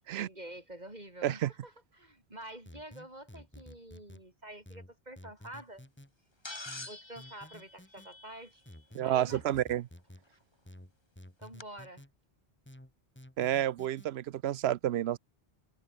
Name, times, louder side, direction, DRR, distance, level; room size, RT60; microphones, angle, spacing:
voice 1, 0.2-5.8 6.8-8.6 9.0-9.4 11.4-12.0, right 1 dB, 45° right, 5.4 m, -48 dB
sound 1, 2.7-4.2 4.7-6.1 6.7-8.1 8.7-10.2 10.7-12.1 12.7-14.1, left 1 dB, 10° left, 2.4 m, -52 dB
sound 2, 6.4-8.8 10.3-10.4 11.6-11.7, left 2 dB, 25° left, 2.0 m, -46 dB
voice 2, 8.9-9.8 13.4-15.2, right 12 dB, 90° right, 0.9 m, -30 dB
omnidirectional pair, 1.0 m